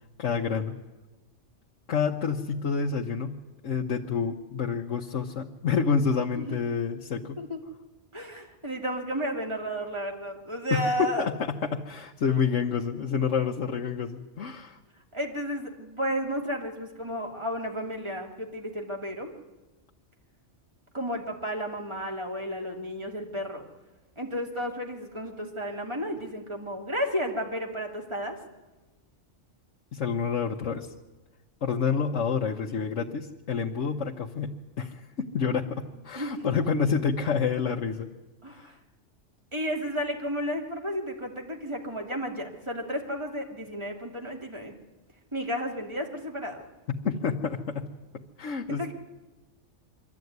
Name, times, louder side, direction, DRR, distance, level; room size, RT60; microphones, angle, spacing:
voice 1, 0.2-0.8 1.9-3.4 3.6-7.4 10.7-14.8 29.9-30.9 31.6-38.1 38.5-38.7 46.9-47.9 48.1-48.9, left 6 dB, 85° left, 0 dB, 1.3 m, -28 dB
voice 2, 8.1-11.3 15.1-19.3 20.9-23.6 24.2-28.4 36.1-36.5 38.4-38.7 39.5-44.7 45.3-46.6 48.7-48.9, equal, 25° right, 1 dB, 2.5 m, -32 dB
23.5 x 13.5 x 9.4 m, 1.2 s
omnidirectional pair, 1.2 m